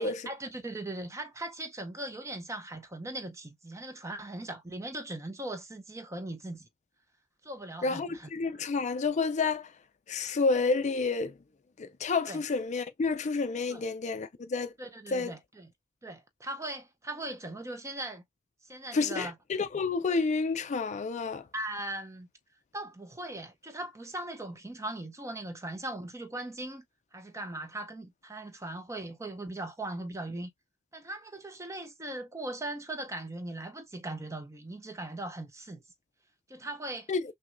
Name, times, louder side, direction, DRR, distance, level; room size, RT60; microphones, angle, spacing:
voice 1, 0.0-6.7 7.4-8.3 12.3-12.4 13.7-13.8 14.8-15.7 16.0-18.2 18.6-19.3 21.5-22.3 22.7-26.8 27.1-30.5 30.9-35.8 36.5-37.1, right 1 dB, 15° right, 0.6 m, -39 dB
voice 2, 7.8-9.7 10.1-11.3 11.8-14.7 15.1-15.3 18.9-21.5 37.1-37.2, left 4 dB, 35° left, 0.4 m, -29 dB
6.0 x 2.2 x 2.5 m
head